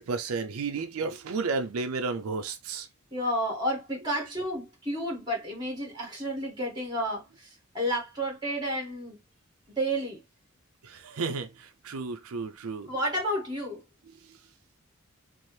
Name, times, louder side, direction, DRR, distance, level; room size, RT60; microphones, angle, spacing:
voice 1, 0.0-2.9 10.8-12.9 14.3-14.4, right 4 dB, 90° right, 0.5 m, -32 dB
voice 2, 3.1-7.5 7.7-9.2 9.8-10.2 12.9-13.8, equal, 20° right, 1.7 m, -31 dB
4.3 x 2.0 x 3.1 m
head